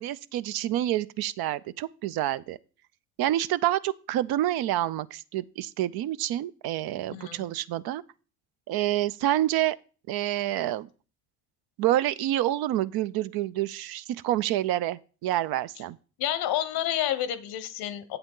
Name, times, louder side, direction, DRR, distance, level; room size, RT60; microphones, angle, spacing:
voice 1, 0.0-2.6 3.2-8.0 8.7-9.8 10.1-10.9 11.8-16.0, right 13 dB, 75° right, 0.5 m, -28 dB
voice 2, 7.1-7.5 16.2-18.2, left 11 dB, 85° left, 0.8 m, -29 dB
7.9 x 7.9 x 3.7 m
supercardioid pair, 60°, 37 cm